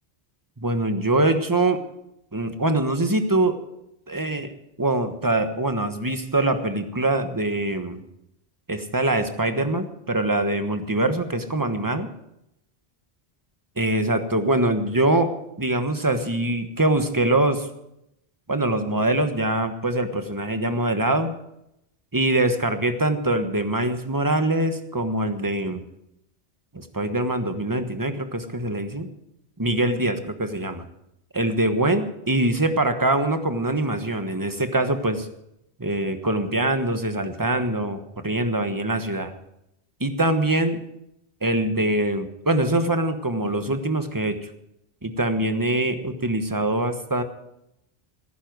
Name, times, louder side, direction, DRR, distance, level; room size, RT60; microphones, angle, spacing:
voice 1, 0.6-1.8 2.3-3.6 4.1-4.5 4.8-8.0 8.7-12.1 13.8-15.3 15.6-17.7 18.5-21.3 22.1-25.8 26.7-29.1 29.6-30.8 31.3-35.3 35.8-39.3 40.0-40.8 41.4-44.5 45.0-47.2, right 2 dB, 20° right, 8 dB, 1.2 m, -23 dB
17.0 x 10.0 x 6.2 m, 0.82 s
omnidirectional pair, 1.1 m